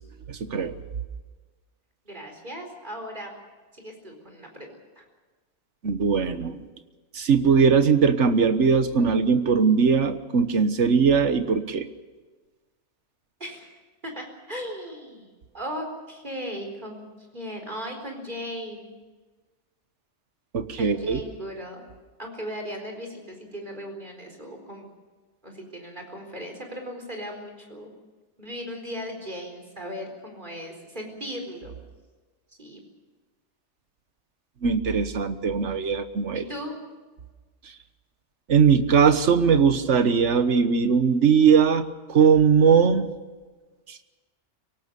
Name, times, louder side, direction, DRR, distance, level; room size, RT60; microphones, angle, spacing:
voice 1, 0.3-0.7 5.8-6.6 7.1-11.9 20.5-21.2 34.6-36.4 38.5-43.1 43.9-44.0, right 6 dB, 80° right, 10 dB, 1.6 m, -20 dB
voice 2, 2.0-3.4 3.7-5.0 13.4-13.7 14.0-15.3 15.5-17.1 17.3-19.0 20.8-21.9 22.2-24.8 25.4-27.9 28.4-31.7 32.6-32.8 36.3-36.8, equal, 40° right, 2 dB, 4.5 m, -37 dB
24.5 x 18.0 x 6.9 m, 1.3 s
omnidirectional pair, 1.2 m